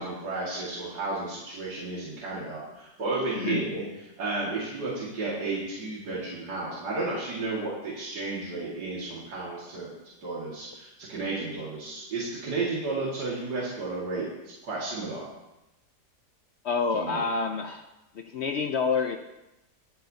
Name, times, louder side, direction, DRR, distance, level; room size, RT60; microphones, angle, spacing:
voice 1, 0.0-3.8 4.2-9.9 10.2-15.2 16.9-17.2, right 3 dB, 75° right, -6 dB, 2.6 m, -32 dB
voice 2, 16.6-17.9 18.1-19.2, left 5 dB, 65° left, 6 dB, 0.7 m, -28 dB
20.0 x 7.8 x 2.8 m, 0.95 s
omnidirectional pair, 1.8 m